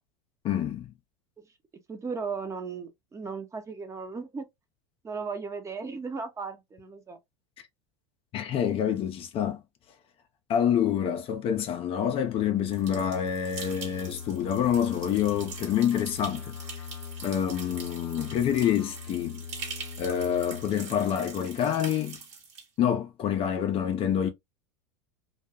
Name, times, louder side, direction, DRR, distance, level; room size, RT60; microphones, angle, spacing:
voice 1, 0.4-0.9 8.3-9.6 10.5-16.5 17.2-19.4 20.0-22.2 22.8-24.3, left 9 dB, 40° left, 0.5 m, -27 dB
voice 2, 1.9-4.5 5.0-7.2, right 5 dB, 20° right, 0.7 m, -36 dB
sound 1, 12.3-20.7, left 6 dB, 70° left, 0.7 m, -42 dB
sound 2, 12.7-22.7, right 5 dB, 45° right, 1.1 m, -44 dB
2.3 x 2.3 x 2.7 m
hypercardioid pair, 85°, 15 cm